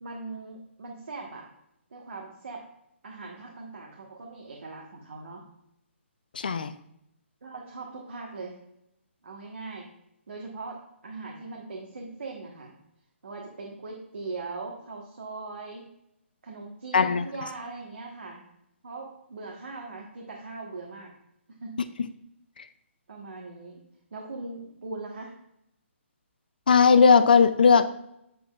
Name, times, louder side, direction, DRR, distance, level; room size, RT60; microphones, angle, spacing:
voice 1, 0.0-1.4 1.9-2.6 3.0-5.4 7.4-8.6 9.2-9.9 10.3-12.7 13.2-15.9 16.4-18.4 18.8-21.1 21.6-22.0 23.1-23.8 24.1-25.3, right 3 dB, 65° right, -1 dB, 1.2 m, -40 dB
voice 2, 6.3-6.7 16.9-17.3 26.7-27.8, left 5 dB, 45° left, 12 dB, 0.3 m, -18 dB
7.8 x 6.0 x 2.4 m, 0.80 s
hypercardioid pair, 180°, 7 cm